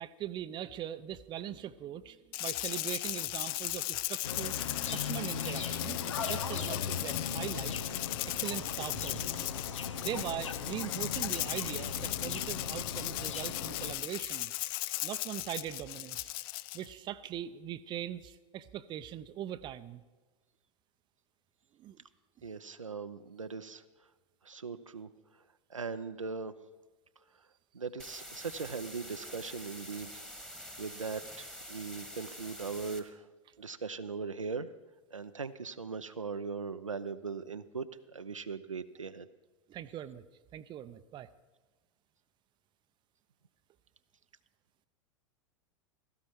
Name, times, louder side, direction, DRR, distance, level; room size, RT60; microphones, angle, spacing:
voice 1, 0.0-4.5 4.9-7.8 8.3-9.5 10.0-14.5 15.0-16.3 16.7-20.0 21.8-22.0 39.7-40.2 40.5-41.3, right 11 dB, 30° right, 13 dB, 0.7 m, -41 dB
Rattle (instrument), 2.3-16.9, left 17 dB, 45° left, 0.4 m, -37 dB
sound 1, 4.2-14.0, left 6 dB, 75° left, 1.1 m, -38 dB
voice 2, 22.4-23.8 24.4-25.1 25.7-26.5 27.7-30.1 30.8-33.2 33.6-34.7 35.1-37.9 38.1-39.3, right 5 dB, 85° right, 10 dB, 0.7 m, -39 dB
sound 2, 28.0-33.0, equal, 5° left, 1.7 m, -46 dB
16.5 x 14.5 x 4.6 m, 1.2 s
figure-of-eight pair, 90°, 16 cm